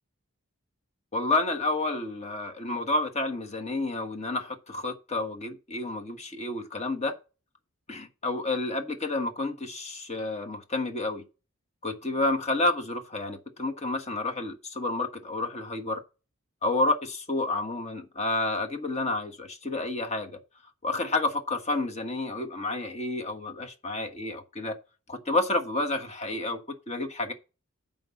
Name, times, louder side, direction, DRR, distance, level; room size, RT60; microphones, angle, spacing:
voice 1, 1.1-7.2 7.9-11.2 11.8-16.0 16.6-20.4 20.8-24.8 25.1-27.3, left 2 dB, 30° left, 1.3 m, -30 dB
7.6 x 5.2 x 7.1 m
head